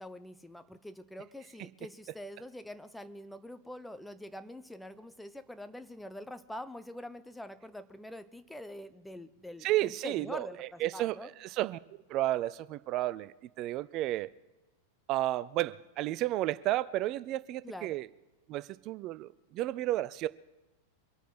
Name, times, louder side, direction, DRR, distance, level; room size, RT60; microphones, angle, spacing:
voice 1, 0.0-11.3 17.6-18.0, left 1 dB, 5° left, 0.8 m, -45 dB
voice 2, 9.6-11.8 12.1-14.3 15.1-18.1 18.5-20.3, right 15 dB, 40° right, 0.4 m, -32 dB
24.0 x 8.3 x 5.8 m
figure-of-eight pair, 90°, 0 cm